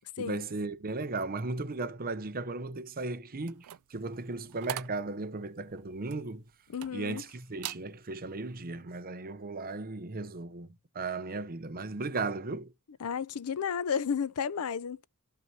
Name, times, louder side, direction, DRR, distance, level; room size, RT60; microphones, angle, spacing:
voice 1, 0.2-3.6 3.9-6.4 6.9-10.7 10.9-12.7, right 3 dB, 40° right, 0.8 m, -36 dB
sound 1, 3.4-7.2 7.5-7.9 8.3-8.6, right 13 dB, 75° right, 0.4 m, -43 dB
voice 2, 6.7-7.2 13.0-15.0, left 7 dB, 75° left, 0.5 m, -32 dB
12.5 x 5.8 x 2.8 m
head